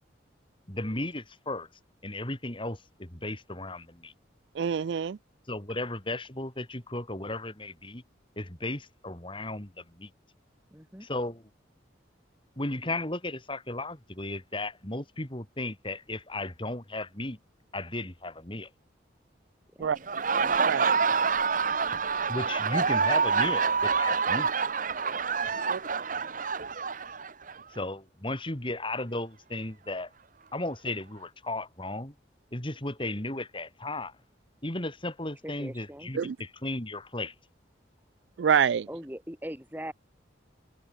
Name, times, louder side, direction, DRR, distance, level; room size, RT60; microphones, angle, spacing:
voice 1, 0.7-1.7 2.0-4.1 5.5-8.0 8.4-10.1 11.0-11.4 12.6-17.4 17.7-18.7 22.3-24.7 27.7-30.1 30.5-32.1 32.5-34.1 34.6-37.3, left 2 dB, 25° left, 3.7 m, -35 dB
voice 2, 4.5-5.2 19.8-20.0 20.6-20.9 25.7-25.8 36.1-36.4 38.4-38.9, right 7 dB, 70° right, 0.4 m, -26 dB
voice 3, 10.7-11.1 19.7-19.9 35.4-36.1 38.9-39.9, equal, 10° right, 4.9 m, -41 dB
Laughter, 20.0-27.6, right 5 dB, 45° right, 1.0 m, -27 dB
head